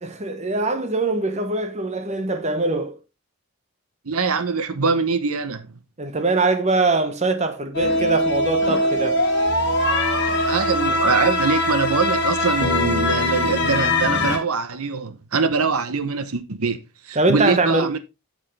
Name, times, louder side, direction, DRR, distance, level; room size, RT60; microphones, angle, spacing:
voice 1, 0.0-3.0 6.0-9.2 17.2-17.9, right 3 dB, 30° right, 1.1 m, -22 dB
voice 2, 4.0-5.7 10.4-18.0, right 4 dB, 80° right, 1.0 m, -23 dB
sound 1, 7.7-14.4, left 1 dB, 50° left, 1.9 m, -21 dB
9.1 x 6.5 x 3.3 m
head